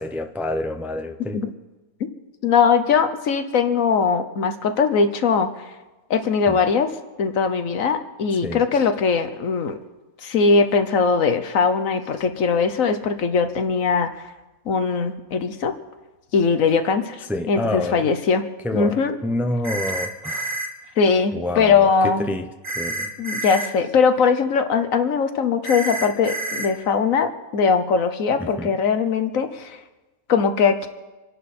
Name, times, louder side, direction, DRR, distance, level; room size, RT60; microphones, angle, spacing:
voice 1, 0.0-1.4 6.5-6.6 8.4-8.6 17.3-18.1 18.6-20.6 21.3-23.1 28.4-28.7, left 1 dB, ahead, 6 dB, 0.7 m, -28 dB
voice 2, 2.4-5.5 6.1-6.9 7.2-9.8 10.2-14.1 14.7-15.7 16.3-17.2 17.5-18.5 18.7-19.1 21.0-22.3 23.2-29.8 30.3-30.9, left 5 dB, 70° left, 9 dB, 1.4 m, -20 dB
sound 1, 19.6-20.7 22.6-23.7 25.6-26.7, right 1 dB, 65° right, 2.3 m, -28 dB
27.0 x 11.0 x 4.3 m, 1.1 s
omnidirectional pair, 1.5 m